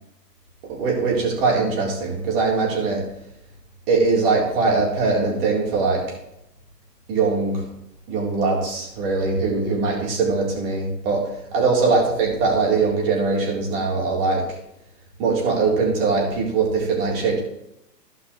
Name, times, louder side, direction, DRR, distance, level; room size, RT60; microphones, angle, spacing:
voice 1, 0.8-3.1 3.9-6.1 7.1-7.7 8.1-14.6 15.2-17.4, right 4 dB, 35° right, -2 dB, 4.0 m, -21 dB
16.0 x 5.9 x 3.3 m, 0.82 s
hypercardioid pair, 145°, 49 cm